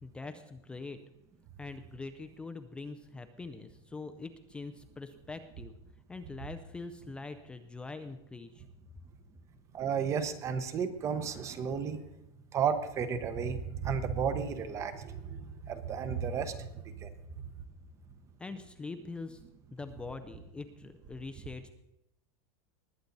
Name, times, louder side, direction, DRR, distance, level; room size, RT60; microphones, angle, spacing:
voice 1, 0.0-1.0 1.6-5.8 6.1-8.6 18.4-19.4 19.7-21.7, left 3 dB, 5° left, 8 dB, 0.4 m, -43 dB
voice 2, 9.7-12.0 12.5-17.1, right 6 dB, 20° right, 11 dB, 0.8 m, -33 dB
20.0 x 8.4 x 4.0 m, 0.87 s
supercardioid pair, 170°, 14 cm